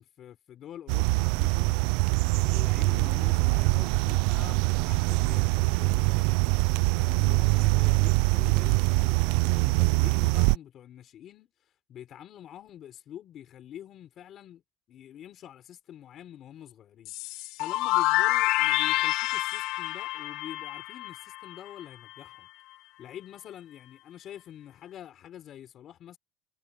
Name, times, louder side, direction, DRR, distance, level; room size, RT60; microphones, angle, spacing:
voice 1, 0.0-1.8 2.3-14.6 14.9-22.5 23.0-26.2, left 11 dB, 35° left, 5.2 m, -46 dB
sound 1, 0.9-10.5, right 26 dB, 70° right, 0.4 m, -24 dB
sound 2, 17.0-21.8, left 17 dB, 60° left, 1.4 m, -28 dB
cardioid pair, 170°, 0 cm